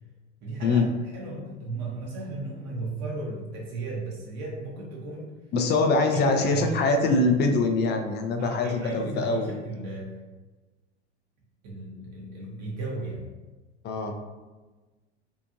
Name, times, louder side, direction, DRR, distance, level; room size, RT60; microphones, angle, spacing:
voice 1, 0.4-5.3 6.1-7.4 8.4-10.2 11.6-13.3, right 2 dB, 50° right, -4 dB, 0.8 m, -35 dB
voice 2, 5.5-9.6 13.8-14.1, left 3 dB, 30° left, 5 dB, 0.4 m, -23 dB
2.7 x 2.5 x 2.5 m, 1.2 s
hypercardioid pair, 80°, 35 cm